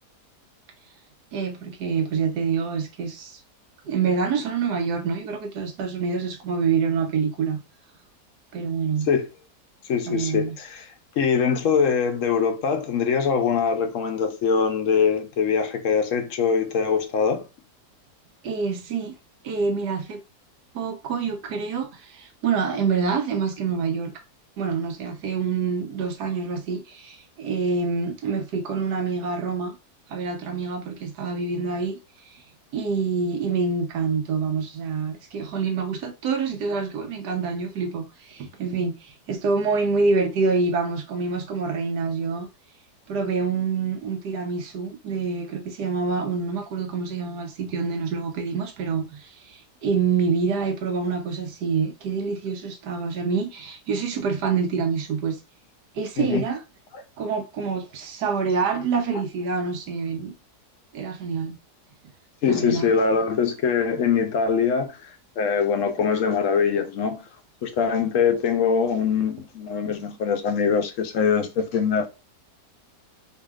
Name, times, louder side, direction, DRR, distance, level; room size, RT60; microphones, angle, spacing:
voice 1, 1.3-3.4 3.8-7.6 8.5-9.1 10.1-10.6 18.4-19.1 19.4-20.2 20.7-24.1 24.6-29.8 30.1-32.0 32.3-32.4 32.7-42.5 43.1-55.4 55.9-56.6 57.2-60.3 60.9-61.6 62.5-62.9, right 5 dB, 80° right, 1.4 m, -26 dB
voice 2, 9.9-10.9 11.2-17.4 56.2-56.4 62.4-65.1 65.4-67.2 67.6-72.1, left 6 dB, 65° left, 0.8 m, -23 dB
4.7 x 2.8 x 2.3 m
omnidirectional pair, 1.7 m